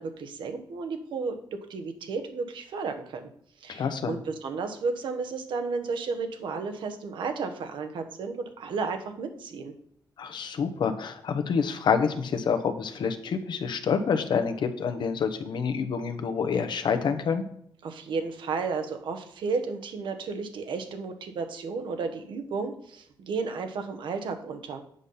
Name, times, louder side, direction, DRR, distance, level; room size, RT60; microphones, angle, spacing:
voice 1, 0.0-3.2 3.6-9.7 17.8-24.8, right 4 dB, 80° right, 7 dB, 1.2 m, -33 dB
voice 2, 3.7-4.2 10.2-17.4, left 6 dB, 70° left, 9 dB, 1.0 m, -27 dB
8.2 x 5.7 x 5.5 m, 0.67 s
cardioid pair, 90°, 8 cm